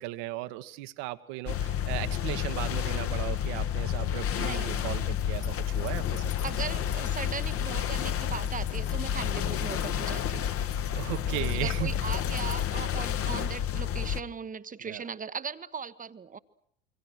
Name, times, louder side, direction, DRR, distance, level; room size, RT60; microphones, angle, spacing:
voice 1, 0.0-6.3 10.9-11.9 14.8-15.0, right 17 dB, 60° right, 11 dB, 1.4 m, -36 dB
sound 1, 1.5-14.2, left 9 dB, 35° left, 1.3 m, -30 dB
voice 2, 4.4-5.0 6.4-10.5 11.3-16.4, right 6 dB, 20° right, 14 dB, 1.1 m, -38 dB
sound 2, 5.1-12.7, left 11 dB, 60° left, 3.2 m, -43 dB
27.0 x 24.0 x 6.4 m, 0.69 s
hypercardioid pair, 75°, 39 cm